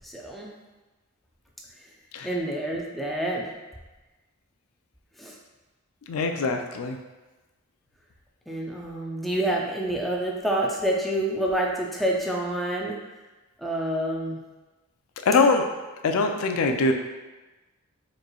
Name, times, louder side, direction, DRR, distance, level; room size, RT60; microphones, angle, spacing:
voice 1, 0.0-0.5 2.2-3.5 5.2-5.3 6.3-6.5 8.5-13.0 13.6-14.4, right 1 dB, ahead, -2 dB, 0.4 m, -28 dB
voice 2, 6.1-7.0 15.3-15.6 16.0-16.9, left 3 dB, 90° left, 5 dB, 0.4 m, -22 dB
4.7 x 3.1 x 2.3 m, 1.2 s
head